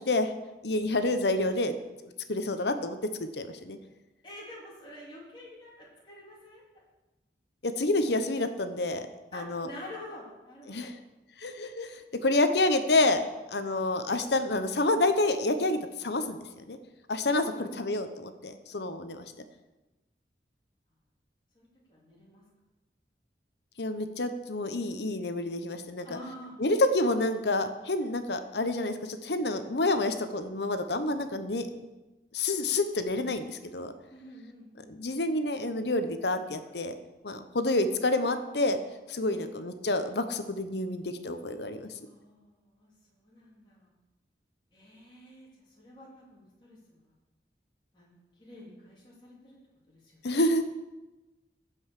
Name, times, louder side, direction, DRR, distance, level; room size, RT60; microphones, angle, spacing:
voice 1, 0.6-1.7 2.3-3.8 7.6-9.1 9.3-9.7 10.7-11.0 11.4-16.4 16.7-16.8 17.1-19.2 23.8-26.1 26.6-31.7 32.3-33.9 34.9-36.9 37.2-38.8 39.1-41.9 50.2-50.6, left 2 dB, 75° left, 9 dB, 1.0 m, -28 dB
voice 2, 4.2-6.6 9.3-11.0 17.5-17.9 21.5-22.4 26.0-26.5 34.1-35.1 39.3-39.5 42.0-43.9 44.7-45.5 45.8-47.0 47.9-49.6 49.9-50.2, left 1 dB, 25° left, -5 dB, 3.6 m, -48 dB
15.0 x 5.5 x 6.5 m, 1.1 s
head